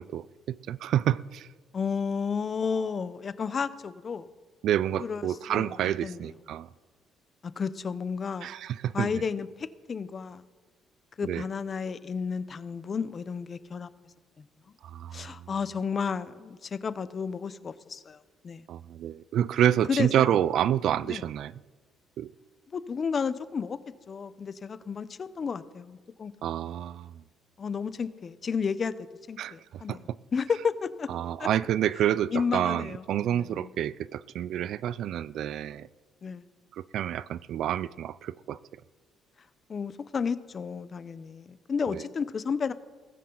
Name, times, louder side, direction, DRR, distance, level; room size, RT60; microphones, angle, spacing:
voice 1, 0.0-1.5 4.6-6.7 8.4-9.1 11.2-11.4 14.8-15.3 18.7-21.5 22.2-22.3 26.4-27.2 29.4-30.2 31.1-35.9 36.7-38.6 41.9-42.1, right 11 dB, 65° right, 0.4 m, -28 dB
voice 2, 1.7-4.3 5.0-6.2 7.4-8.5 8.9-10.4 11.2-13.9 14.4-14.5 15.1-18.2 18.4-18.7 19.9-20.3 21.1-21.2 22.7-23.8 24.1-26.3 27.6-28.9 29.3-30.0 30.3-31.1 31.4-31.5 32.3-33.7 36.2-36.4 39.7-42.7, left 6 dB, 35° left, 0.7 m, -32 dB
18.0 x 15.5 x 3.9 m
cardioid pair, 125°, 0 cm